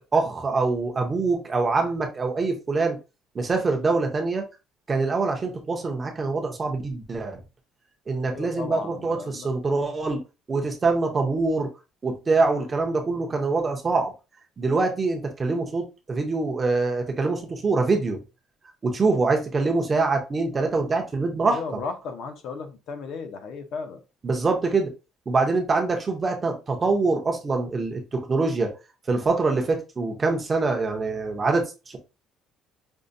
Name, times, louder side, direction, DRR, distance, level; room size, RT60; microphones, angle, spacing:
voice 1, 0.1-3.0 3.3-4.4 4.9-7.4 8.1-10.2 10.5-11.7 12.0-14.1 14.6-18.2 18.8-21.6 24.2-24.9 25.3-28.7 29.1-32.0, right 3 dB, 20° right, 0.6 m, -24 dB
voice 2, 8.2-9.5 21.5-24.0, left 5 dB, 50° left, 0.6 m, -35 dB
5.3 x 2.2 x 2.5 m
cardioid pair, 180°, 0 cm